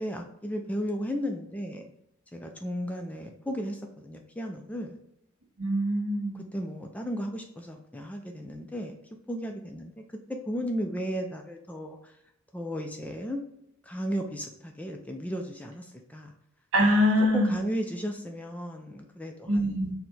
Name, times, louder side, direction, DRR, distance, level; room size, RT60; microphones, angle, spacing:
voice 1, 0.0-1.9 2.3-5.0 6.3-8.9 9.3-9.9 10.3-12.1 12.5-13.4 13.8-16.3 17.3-19.6, equal, 5° left, 3 dB, 0.3 m, -34 dB
voice 2, 5.6-6.4 16.7-17.5 19.5-19.9, equal, 80° right, -2 dB, 1.5 m, -23 dB
4.5 x 2.1 x 4.0 m, 0.79 s
head